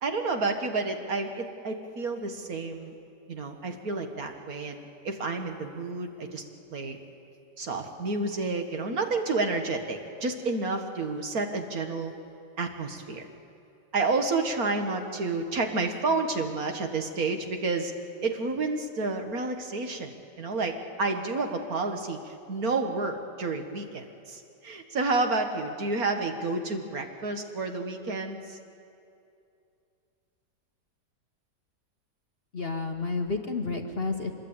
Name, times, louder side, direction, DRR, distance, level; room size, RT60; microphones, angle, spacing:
voice 1, 0.0-2.9 3.3-6.4 6.7-7.0 7.6-12.1 12.6-13.3 13.9-17.9 18.2-28.6, right 3 dB, 55° right, 5 dB, 1.9 m, -30 dB
voice 2, 32.5-34.3, left 4 dB, 40° left, 4 dB, 1.2 m, -30 dB
24.5 x 21.5 x 8.7 m, 2.6 s
omnidirectional pair, 1.9 m